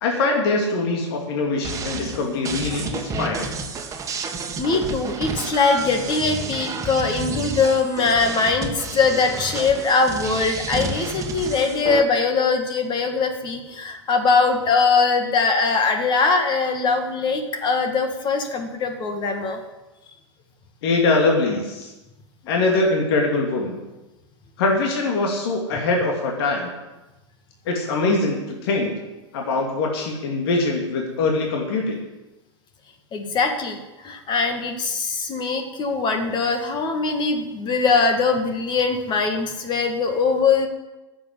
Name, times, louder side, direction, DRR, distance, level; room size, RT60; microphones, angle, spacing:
voice 1, 0.0-3.5 20.8-21.9 22.5-23.8 24.6-26.7 27.7-28.9 29.3-32.0, left 3 dB, 60° left, 1 dB, 2.6 m, -22 dB
sound 1, 1.6-12.0, right 3 dB, 20° right, 1.8 m, -30 dB
voice 2, 4.6-19.6 33.1-40.7, left 4 dB, 30° left, 5 dB, 2.0 m, -21 dB
10.5 x 7.7 x 9.4 m, 1.1 s
figure-of-eight pair, 95°, 15 cm